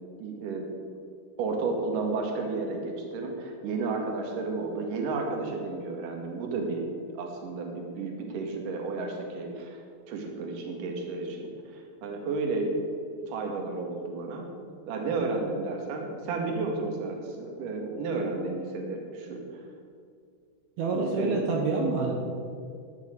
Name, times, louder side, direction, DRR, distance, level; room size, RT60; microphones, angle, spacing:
voice 1, 0.2-0.7 1.4-6.9 7.1-12.7 13.3-14.5 14.9-19.6 20.9-21.6, right 3 dB, 55° right, 1 dB, 2.8 m, -32 dB
voice 2, 20.8-22.1, right 3 dB, 70° right, 1 dB, 2.4 m, -27 dB
11.5 x 8.3 x 9.0 m, 2.3 s
omnidirectional pair, 5.7 m